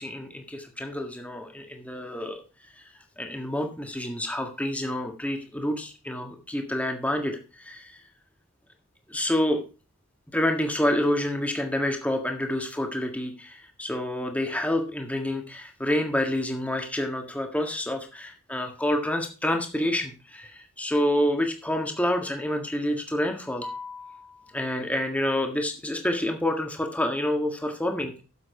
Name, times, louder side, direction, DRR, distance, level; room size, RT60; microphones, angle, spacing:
voice 1, 0.0-2.4 2.8-2.9 3.2-8.0 9.1-9.6 10.3-28.2, left 1 dB, 5° left, 3 dB, 1.7 m, -28 dB
8.4 x 7.5 x 5.7 m, 0.33 s
head